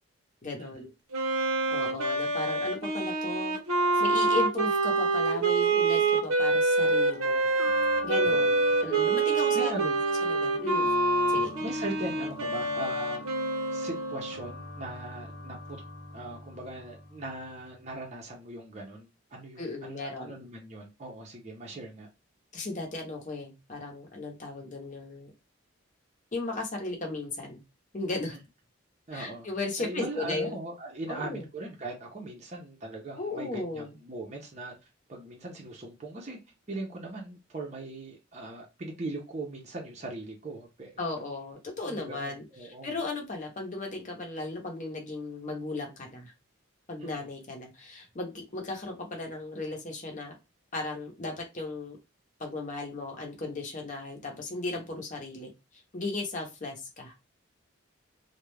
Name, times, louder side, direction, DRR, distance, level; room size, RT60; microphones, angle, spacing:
voice 1, 0.4-0.9 1.7-7.4 8.0-9.7 10.3-10.9 11.3-11.5 19.6-20.4 22.5-25.3 26.3-27.6 27.9-28.4 29.1-30.5 31.1-31.5 33.2-34.0 41.0-46.3 46.9-50.3 50.7-52.0 52.4-57.1, left 2 dB, 35° left, 2 dB, 0.7 m, -36 dB
Wind instrument woodwind instrument, 1.1-14.5, right 3 dB, 90° right, 0.7 m, -26 dB
sound 1, 6.8-17.9, left 1 dB, 75° left, 0.6 m, -42 dB
voice 2, 9.5-10.0 11.6-13.2 13.7-15.8 16.1-22.1 29.1-29.5 29.8-34.7 35.1-36.4 36.7-41.1 41.9-42.9 47.0-47.3, right 2 dB, 35° right, -1 dB, 0.5 m, -39 dB
2.3 x 2.1 x 3.1 m, 0.25 s
head